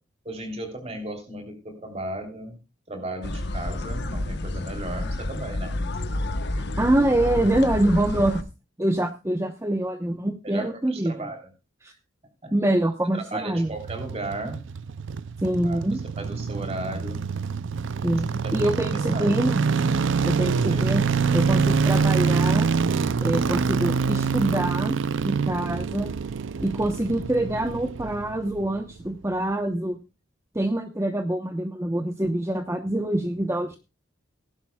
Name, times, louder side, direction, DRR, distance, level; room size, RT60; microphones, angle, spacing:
voice 1, 0.2-2.6 2.9-5.8 10.4-11.5 11.9-12.0 12.4-12.5 13.1-14.6 15.5-17.2 18.4-18.7 19.1-19.3 20.7-20.8, right 2 dB, 30° right, 4 dB, 3.4 m, -35 dB
sound 1, 3.2-8.4, left 1 dB, 55° left, 1.1 m, -30 dB
voice 2, 6.5-8.4 8.8-11.3 11.8-11.9 12.5-13.7 15.4-16.0 18.0-19.6 20.2-21.0 21.3-22.7 23.2-25.0 25.2-26.1 26.6-30.0 30.5-33.8, right 1 dB, 15° right, 6 dB, 0.9 m, -25 dB
sound 2, 13.6-28.8 29.1-29.2, right 5 dB, 65° right, 0.5 m, -25 dB
18.0 x 11.0 x 2.3 m, 0.28 s
head